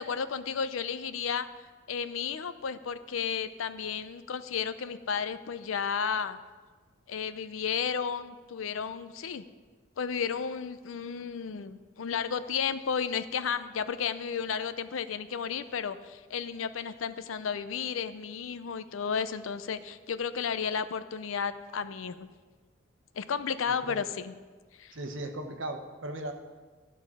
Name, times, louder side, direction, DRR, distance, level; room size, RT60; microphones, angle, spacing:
voice 1, 0.0-1.5 1.9-6.4 7.1-9.4 10.0-22.3 23.1-24.3 24.8-25.0, left 6 dB, 80° left, 13 dB, 0.5 m, -33 dB
voice 2, 23.7-24.0 24.9-26.3, right 1 dB, 70° right, 5 dB, 1.0 m, -37 dB
14.5 x 5.5 x 4.9 m, 1.4 s
head